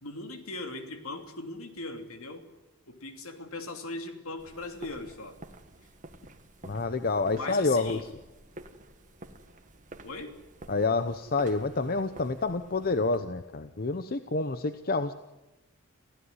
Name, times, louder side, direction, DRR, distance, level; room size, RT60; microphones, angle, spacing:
voice 1, 0.0-2.4 2.9-5.3 7.3-8.0 10.0-10.3, left 2 dB, 70° left, 6 dB, 3.1 m, -39 dB
sound 1, 4.4-13.2, right 2 dB, 35° right, 1.8 m, -50 dB
voice 2, 6.6-8.0 10.7-15.1, left 3 dB, 40° left, 10 dB, 0.9 m, -28 dB
26.5 x 16.0 x 9.8 m, 1.0 s
head